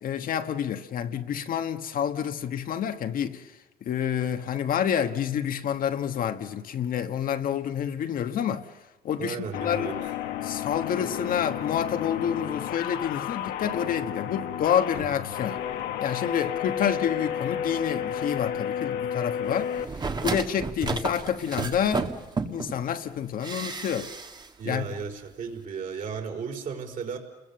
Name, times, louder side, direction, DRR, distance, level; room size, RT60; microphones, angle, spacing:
voice 1, 0.0-3.4 3.8-8.7 9.0-9.9 10.4-15.6 16.0-19.7 20.2-22.1 22.5-24.1 24.6-24.9, left 8 dB, 55° left, 1.4 m, -28 dB
voice 2, 9.2-10.0 24.6-27.2, right 6 dB, 50° right, 4.7 m, -34 dB
sound 1, 9.5-19.8, left 9 dB, 85° left, 1.7 m, -32 dB
sound 2, 19.8-22.8 23.4-24.5 24.7-24.8, right 4 dB, 25° right, 1.6 m, -32 dB
30.0 x 21.5 x 6.9 m
cardioid pair, 110°, 17 cm